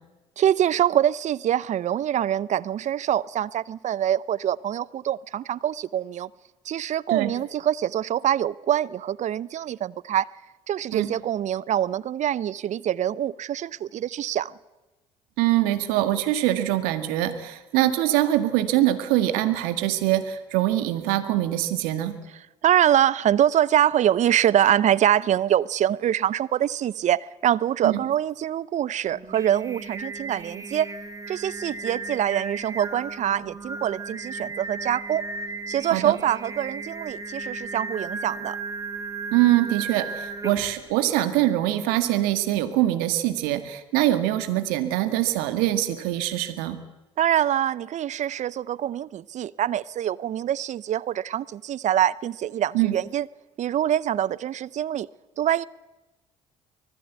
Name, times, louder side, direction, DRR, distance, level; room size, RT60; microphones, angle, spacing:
voice 1, 0.4-6.3 6.7-10.3 10.7-14.5 22.6-30.9 31.3-35.2 35.7-38.6 47.2-53.3 53.6-55.1 55.4-55.6, right 11 dB, 50° right, 0.7 m, -24 dB
voice 2, 15.4-22.2 27.8-28.0 35.9-36.2 39.3-46.8 52.7-53.0, right 14 dB, 75° right, 1.9 m, -23 dB
Singing, 29.1-40.9, right 3 dB, 20° right, 2.8 m, -35 dB
25.0 x 19.5 x 8.3 m
hypercardioid pair, 55°, 15 cm